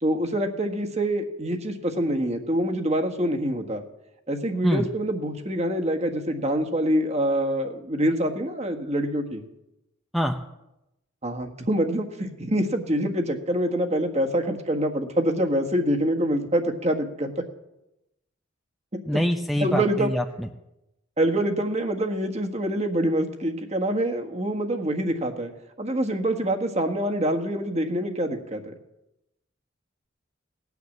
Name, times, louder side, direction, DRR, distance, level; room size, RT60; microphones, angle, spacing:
voice 1, 0.0-3.8 4.3-9.4 11.2-17.4 19.6-20.1 21.2-25.5 25.8-28.7, right 1 dB, 35° right, 4 dB, 1.6 m, -25 dB
voice 2, 19.1-20.5, equal, ahead, 2 dB, 0.6 m, -25 dB
18.5 x 9.5 x 7.3 m, 0.92 s
head